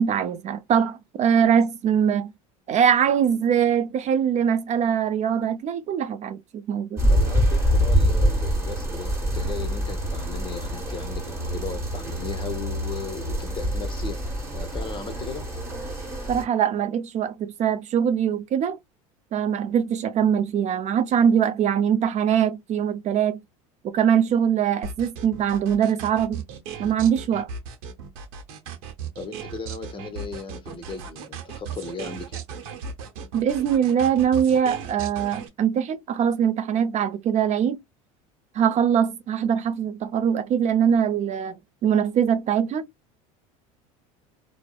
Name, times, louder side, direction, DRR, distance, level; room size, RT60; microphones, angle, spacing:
voice 1, 0.0-2.3 2.7-7.1 16.3-18.8 19.3-23.4 23.8-26.4 26.8-27.5 33.3-37.8 38.5-41.6 41.8-42.9, right 8 dB, 40° right, 0.4 m, -22 dB
sound 1, 7.0-16.4, equal, 15° right, 1.4 m, -25 dB
voice 2, 7.1-14.2 14.5-15.5 29.2-32.4, left 5 dB, 25° left, 0.8 m, -36 dB
sound 2, 24.8-35.5, right 6 dB, 70° right, 0.8 m, -36 dB
2.6 x 2.0 x 2.3 m
hypercardioid pair, 85°, 18 cm